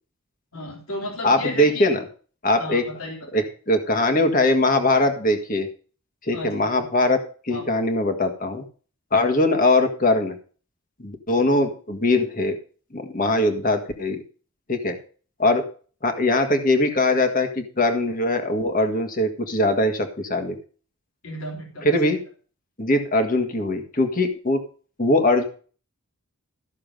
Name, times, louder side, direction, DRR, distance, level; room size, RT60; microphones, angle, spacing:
voice 1, 0.5-1.9 2.6-3.5 6.3-6.9 7.5-7.7 21.2-22.0, left 1 dB, 75° left, 0 dB, 3.3 m, -34 dB
voice 2, 1.2-2.0 2.4-2.8 3.3-5.7 6.2-7.2 7.4-8.6 9.1-10.3 11.0-12.6 12.9-14.2 14.7-15.0 15.4-15.7 16.0-20.6 21.8-22.2 22.8-24.6 25.0-25.4, left 2 dB, 40° left, 6 dB, 1.7 m, -21 dB
13.5 x 6.8 x 5.3 m, 0.40 s
head